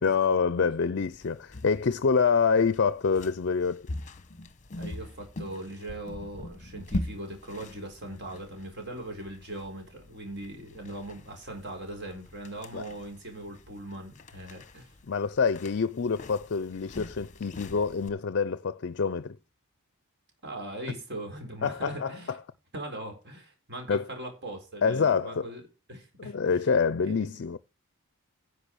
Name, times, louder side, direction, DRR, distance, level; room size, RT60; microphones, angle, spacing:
voice 1, 0.0-3.9 12.7-12.8 15.1-19.4 21.6-22.4 23.9-24.0 24.8-25.5 26.2-27.6, left 5 dB, 50° left, 0.5 m, -26 dB
sound 1, 1.0-18.1, left 1 dB, 35° left, 1.0 m, -42 dB
voice 2, 4.7-15.0 20.4-22.4 22.7-25.6 25.9-26.6 27.1-27.4, right 1 dB, 50° right, 4.3 m, -40 dB
10.5 x 6.1 x 6.2 m
head